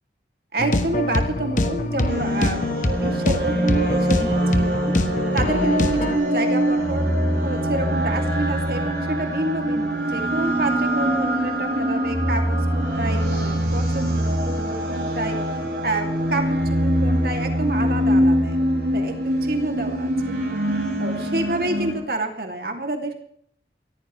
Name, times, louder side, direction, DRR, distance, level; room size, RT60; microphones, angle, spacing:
voice 1, 0.5-4.3 4.5-4.9 5.3-7.1 7.4-15.4 15.8-20.6 21.0-23.1, right 2 dB, 55° right, 4 dB, 2.6 m, -28 dB
sound 1, 0.6-6.2, left 1 dB, 45° left, 1.4 m, -24 dB
sound 2, 2.1-21.9, equal, 75° right, 6.3 m, -23 dB
28.0 x 15.0 x 3.2 m, 0.67 s
head